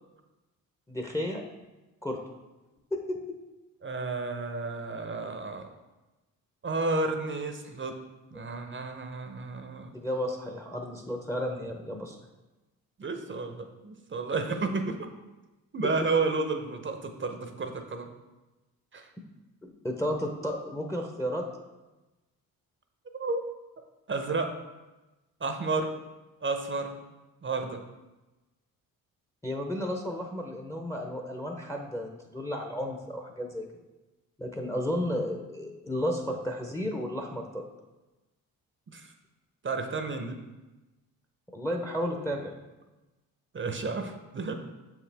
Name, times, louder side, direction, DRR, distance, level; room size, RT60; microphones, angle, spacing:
voice 1, 0.9-1.4 2.0-2.2 2.9-3.2 9.9-12.2 19.6-21.4 29.4-33.6 34.4-37.6 41.5-42.5, equal, 10° left, 2 dB, 0.7 m, -33 dB
voice 2, 3.8-5.7 6.6-7.9 8.3-10.0 13.0-15.1 15.7-18.1 18.9-19.1 23.2-23.4 24.1-24.5 25.4-25.9 26.4-27.0 27.4-27.8 38.9-39.1 39.6-40.4 43.5-44.5, right 3 dB, 30° right, 6 dB, 0.7 m, -31 dB
6.8 x 4.8 x 3.4 m, 1.1 s
cardioid pair, 70°, 37 cm